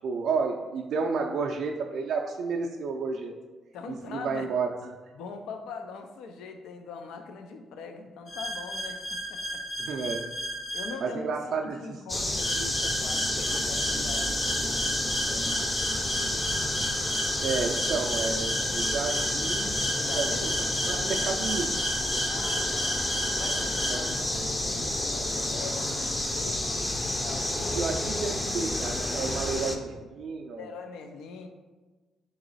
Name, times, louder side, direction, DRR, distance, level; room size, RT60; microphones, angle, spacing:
voice 1, 0.0-3.3 3.9-4.7 9.8-10.3 11.0-12.0 17.4-19.8 20.1-20.3 20.9-21.8 23.9-24.1 27.7-30.7, right 5 dB, 65° right, 1 dB, 0.3 m, -31 dB
voice 2, 3.7-4.5 5.1-9.6 10.7-15.5 20.0-20.5 22.3-23.0 23.3-26.8 27.2-27.9 30.6-31.5, left 4 dB, 85° left, 6 dB, 0.4 m, -42 dB
sound 1, 8.3-10.9 12.3-24.1, equal, 50° left, 1.0 m, -33 dB
sound 2, 12.1-29.8, left 1 dB, 20° left, 0.5 m, -30 dB
3.9 x 3.0 x 4.0 m, 1.3 s
cardioid pair, 90°, 0 cm